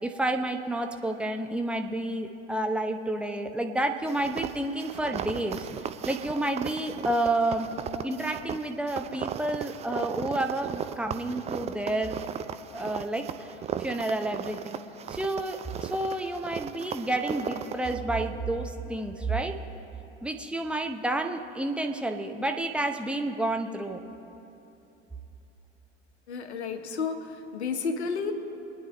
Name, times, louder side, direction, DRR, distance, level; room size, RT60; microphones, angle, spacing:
voice 1, 0.0-5.7 6.1-7.7 8.0-12.2 12.7-13.5 13.8-14.8 15.1-19.5 20.2-24.0, right 1 dB, 5° right, 4 dB, 0.9 m, -30 dB
sound 1, 4.1-18.0, right 9 dB, 20° right, 0.5 m, -36 dB
voice 2, 26.3-28.3, left 5 dB, 70° left, 6 dB, 1.3 m, -31 dB
24.0 x 9.9 x 3.3 m, 3.0 s
figure-of-eight pair, 80°, 34 cm